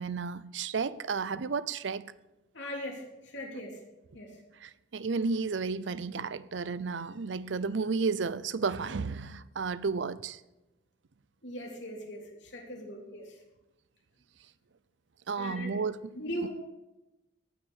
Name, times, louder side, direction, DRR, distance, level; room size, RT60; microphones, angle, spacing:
voice 1, 0.0-2.0 4.6-10.4 15.3-16.0 16.4-16.5, right 4 dB, 75° right, 0.5 m, -32 dB
voice 2, 2.5-3.8 4.1-4.4 11.4-13.4 15.4-15.7 16.1-16.5, equal, 70° left, 3.2 m, -39 dB
17.0 x 6.2 x 6.4 m
head